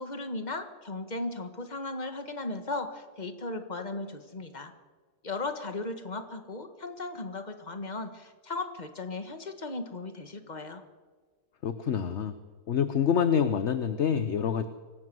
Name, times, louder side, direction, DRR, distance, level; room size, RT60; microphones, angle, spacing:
voice 1, 0.0-4.7 5.2-10.8, left 2 dB, 25° left, 7 dB, 1.7 m, -36 dB
voice 2, 11.6-12.3 12.7-14.7, left 7 dB, 50° left, 11 dB, 1.0 m, -26 dB
24.5 x 18.0 x 7.8 m, 1.4 s
omnidirectional pair, 1.8 m